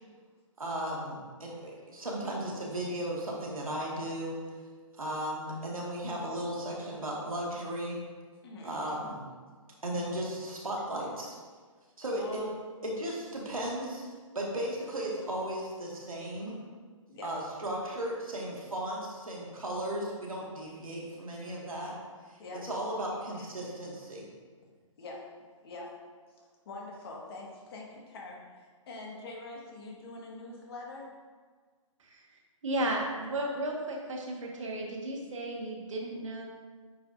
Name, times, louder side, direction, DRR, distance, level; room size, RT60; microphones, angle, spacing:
voice 1, 0.6-4.4 4.9-8.0 8.6-9.2 9.8-11.4 12.0-12.4 12.8-14.1 14.3-16.6 17.2-22.0 22.3-24.3, right 1 dB, 90° right, -3 dB, 1.9 m, -35 dB
voice 2, 8.4-8.8 12.1-12.5 17.1-17.3 22.4-22.6 23.3-23.4 25.0-25.2 25.6-25.9 26.4-31.1, left 2 dB, 45° left, -2 dB, 1.7 m, -44 dB
voice 3, 32.6-36.5, right 1 dB, 65° right, -1 dB, 1.6 m, -34 dB
9.1 x 5.0 x 2.6 m, 1.5 s
figure-of-eight pair, 140°, 17 cm